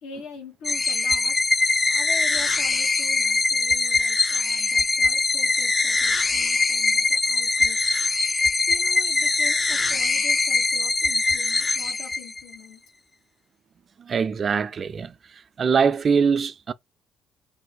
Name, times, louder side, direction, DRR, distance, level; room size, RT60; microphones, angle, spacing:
voice 1, 0.0-7.8 8.7-12.8, left 5 dB, 85° left, 1.0 m, -42 dB
sound 1, 0.6-12.6, left 3 dB, 35° left, 0.4 m, -22 dB
voice 2, 14.0-15.1 15.6-16.7, right 6 dB, 50° right, 0.3 m, -22 dB
2.6 x 2.2 x 4.1 m
supercardioid pair, 60°, 0 cm